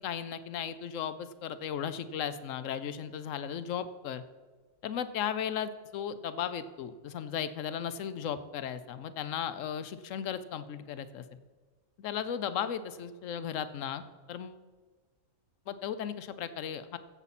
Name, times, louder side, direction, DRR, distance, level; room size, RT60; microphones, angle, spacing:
voice 1, 0.0-4.2 4.8-11.2 12.0-14.6 15.7-17.0, left 8 dB, 70° left, 13 dB, 1.0 m, -36 dB
15.5 x 7.1 x 4.1 m, 1.4 s
omnidirectional pair, 1.4 m